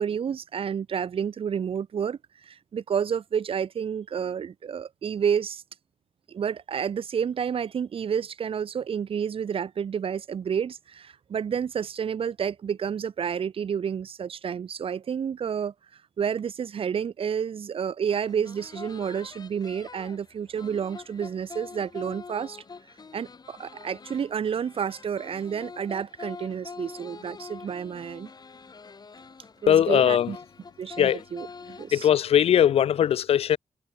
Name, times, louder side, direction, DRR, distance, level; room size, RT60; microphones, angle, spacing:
voice 1, 0.0-5.6 6.3-15.7 16.2-22.6 23.1-28.3 29.6-30.4 30.8-32.1, right 7 dB, 65° right, 2.2 m, -30 dB
sound 1, 18.1-32.2, left 4 dB, 40° left, 6.5 m, -45 dB
voice 2, 29.7-30.3 31.0-31.2 31.9-33.6, left 10 dB, 70° left, 0.6 m, -20 dB
cardioid pair, 85°, 10 cm